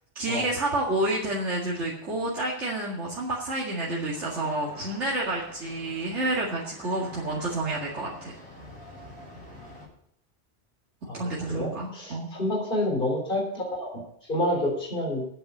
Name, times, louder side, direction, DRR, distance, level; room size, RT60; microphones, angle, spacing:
voice 1, 0.2-8.3 11.1-12.3, right 2 dB, 80° right, -5 dB, 2.5 m, -29 dB
sound 1, 4.1-9.9, left 1 dB, 5° left, 4.5 m, -46 dB
voice 2, 11.0-14.0 14.3-15.3, left 1 dB, 50° left, -1 dB, 4.0 m, -28 dB
8.9 x 8.6 x 8.5 m, 0.69 s
omnidirectional pair, 1.2 m